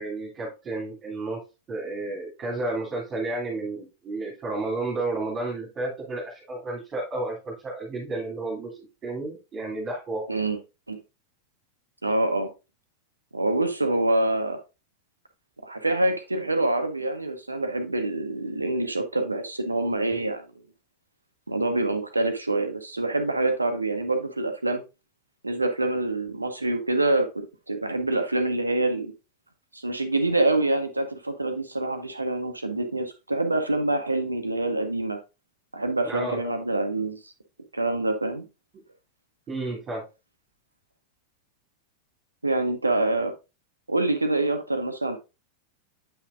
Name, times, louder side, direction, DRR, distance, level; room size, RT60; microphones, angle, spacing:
voice 1, 0.0-1.4 1.7-10.2 36.0-36.4 39.5-40.0, right 2 dB, 25° right, -4 dB, 2.6 m, -32 dB
voice 2, 12.0-12.5 13.3-14.6 15.6-20.4 21.5-24.8 25.4-29.1 29.7-35.2 35.7-37.3 37.7-38.4 42.4-43.3 43.9-45.2, right 2 dB, 80° right, 7 dB, 1.0 m, -26 dB
8.2 x 5.8 x 2.5 m, 0.28 s
figure-of-eight pair, 90°, 0 cm